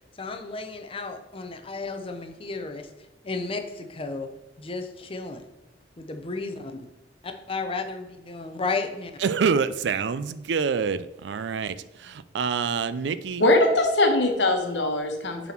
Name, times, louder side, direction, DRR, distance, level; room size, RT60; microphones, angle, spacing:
voice 1, 0.2-2.9 3.2-4.3 4.6-5.4 6.0-6.8 7.2-9.1, left 3 dB, 30° left, 5 dB, 0.7 m, -33 dB
voice 2, 9.2-13.5, right 5 dB, 75° right, 15 dB, 0.4 m, -26 dB
voice 3, 13.4-15.5, left 2 dB, 80° left, 4 dB, 1.2 m, -21 dB
7.0 x 4.1 x 4.4 m, 1.0 s
head